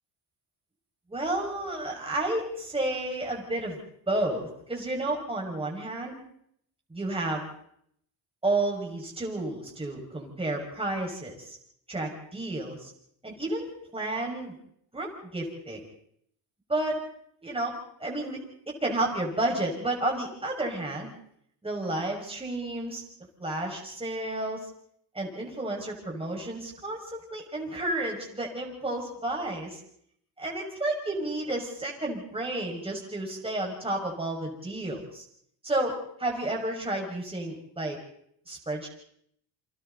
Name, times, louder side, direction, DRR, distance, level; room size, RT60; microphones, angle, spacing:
voice 1, 1.1-3.8 4.1-6.2 6.9-7.5 8.4-11.6 11.9-12.9 13.2-14.5 14.9-15.8 16.7-17.0 17.4-17.7 18.0-18.4 18.7-21.1 21.6-23.0 23.4-24.7 25.1-29.8 30.4-35.2 35.6-35.9 36.2-38.0 38.5-38.9, right 2 dB, 10° right, -1 dB, 5.8 m, -31 dB
29.5 x 23.5 x 4.1 m, 0.68 s
cardioid pair, 95°, 46 cm